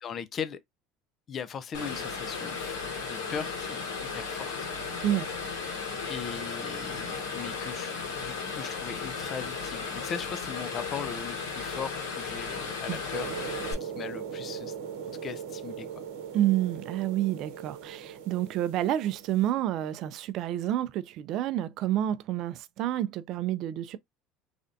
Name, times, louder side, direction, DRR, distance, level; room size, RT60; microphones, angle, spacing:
voice 1, 0.0-0.6 1.3-4.7 6.1-13.5 13.8-14.7 15.1-15.9, left 7 dB, 40° left, 0.4 m, -39 dB
sound 1, 1.7-13.7, left 5 dB, 85° left, 1.8 m, -35 dB
sound 2, 13.1-19.5, right 7 dB, 80° right, 0.8 m, -39 dB
voice 2, 16.3-24.0, right 12 dB, 60° right, 0.4 m, -29 dB
3.3 x 2.5 x 2.5 m
supercardioid pair, 105°, 0 cm